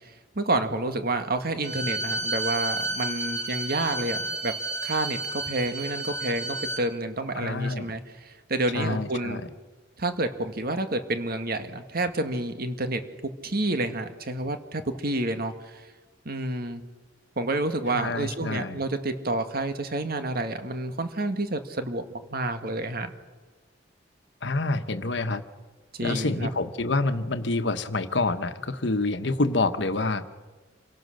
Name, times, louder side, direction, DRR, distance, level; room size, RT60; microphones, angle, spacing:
voice 1, 0.0-4.5 4.8-9.4 10.0-13.0 13.4-15.8 16.3-16.8 17.4-23.1 25.9-26.6, right 2 dB, 55° right, 8 dB, 1.8 m, -29 dB
Bowed string instrument, 1.6-6.8, right 2 dB, 40° right, 2.2 m, -31 dB
voice 2, 7.4-7.9 8.7-9.5 17.9-18.8 24.4-25.4 26.0-30.2, left 2 dB, 70° left, 10 dB, 1.3 m, -27 dB
27.0 x 17.5 x 6.5 m, 1.3 s
head